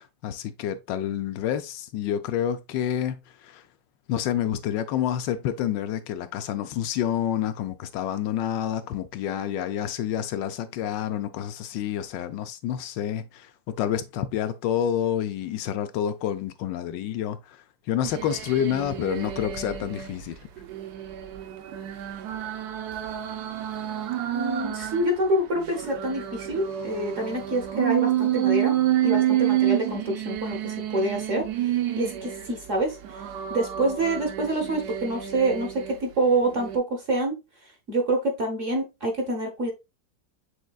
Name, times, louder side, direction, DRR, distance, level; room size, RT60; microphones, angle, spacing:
voice 1, 0.0-3.6 4.1-20.4, left 10 dB, 80° left, 1.2 m, -28 dB
sound 1, 18.0-20.1 20.6-25.1 25.5-32.5 33.0-36.0 36.5-36.8, right 12 dB, 70° right, 1.1 m, -28 dB
voice 2, 24.3-28.7 29.0-31.4 32.0-37.4 37.9-39.7, right 1 dB, 50° right, 1.4 m, -27 dB
6.4 x 3.6 x 2.3 m
omnidirectional pair, 1.9 m